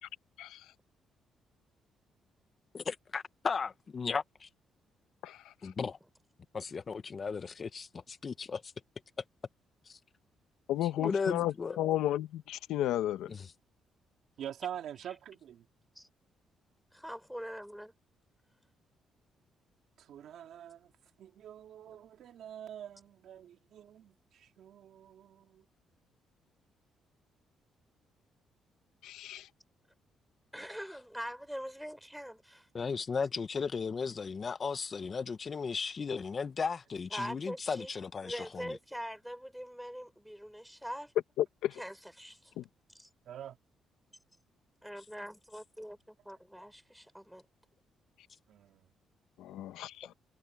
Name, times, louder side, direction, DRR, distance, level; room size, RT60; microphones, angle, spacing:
voice 1, 2.7-4.5 5.6-6.0 6.5-8.7 9.9-10.0 11.0-11.8 13.3-13.4 32.7-38.7, left 5 dB, 40° left, 1.4 m, -35 dB
voice 2, 5.2-5.5 10.7-13.3 29.0-29.5 41.4-41.8 42.6-42.7 49.4-50.1, left 13 dB, 90° left, 1.4 m, -33 dB
voice 3, 14.4-15.6 20.0-20.9 21.2-25.6 43.2-43.6 48.5-48.9, right 10 dB, 70° right, 2.7 m, -46 dB
voice 4, 16.9-17.9 30.5-32.7 37.1-41.1 41.8-42.5 42.9-43.1 44.8-47.4, equal, ahead, 5.0 m, -43 dB
cardioid pair, 90°, 0 cm